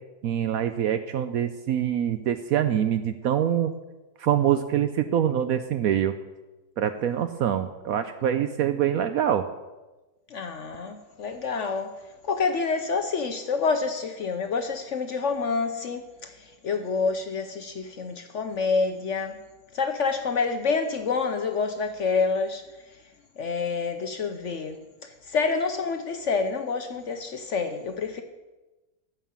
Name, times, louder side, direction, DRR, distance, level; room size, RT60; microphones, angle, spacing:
voice 1, 0.2-3.7 4.2-6.2 6.8-9.5, right 10 dB, 70° right, 0.9 m, -25 dB
voice 2, 10.3-11.9 12.2-19.3 19.7-22.6 23.4-28.2, left 4 dB, 55° left, 0.9 m, -28 dB
14.5 x 5.6 x 7.2 m
omnidirectional pair, 1.9 m